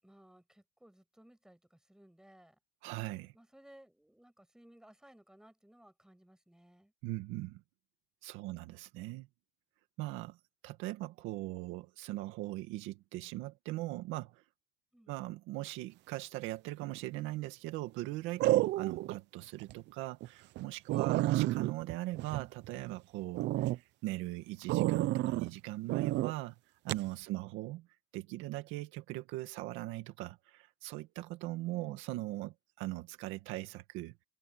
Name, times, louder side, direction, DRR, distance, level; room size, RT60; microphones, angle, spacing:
voice 1, 0.0-2.6 3.3-6.9 8.4-8.8 14.9-15.2 20.9-21.3 31.6-32.0, right 1 dB, 5° right, 6.9 m, -60 dB
voice 2, 2.8-3.3 7.0-7.6 8.2-9.3 10.0-10.4 10.6-14.4 15.1-26.6 26.8-27.9 28.1-34.1, right 18 dB, 80° right, 2.1 m, -40 dB
sound 1, 16.8-17.2 18.4-19.2 19.6-19.7 20.2-20.3 20.6-20.7 20.9-22.9 23.3-23.8 24.7-25.5 25.9-26.3 26.9-27.1, right 16 dB, 65° right, 0.7 m, -30 dB
cardioid pair, 115°, 20 cm